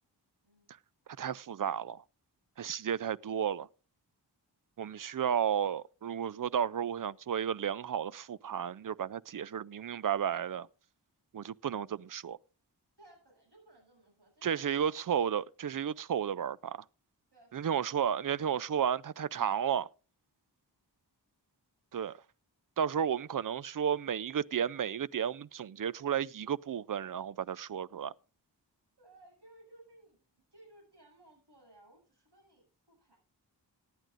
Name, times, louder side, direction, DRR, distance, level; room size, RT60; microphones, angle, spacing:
voice 1, 0.4-0.7 13.0-14.9 17.3-18.5 29.0-30.3 30.5-33.2, right 1 dB, 65° right, 7.7 m, -60 dB
voice 2, 1.2-2.0 2.6-3.7 4.8-10.7 11.3-12.4 14.4-16.8 17.5-19.9 21.9-22.2 22.8-28.1, right 8 dB, 50° right, 0.5 m, -33 dB
18.0 x 10.5 x 2.5 m
wide cardioid pair, 45°, 42 cm